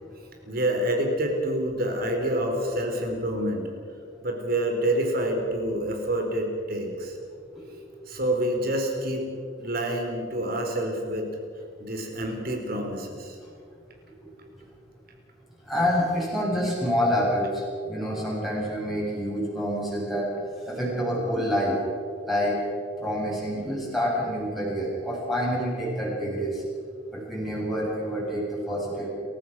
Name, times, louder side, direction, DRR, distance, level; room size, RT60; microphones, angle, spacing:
voice 1, 0.5-3.7 4.2-7.2 8.1-9.3 9.6-11.3 11.8-13.4, right 1 dB, 50° right, 3 dB, 4.3 m, -27 dB
voice 2, 15.7-20.3 20.7-21.8 22.3-22.6 23.0-26.6 27.1-29.1, equal, ahead, -6 dB, 7.6 m, -27 dB
29.5 x 15.5 x 6.2 m, 2.3 s
head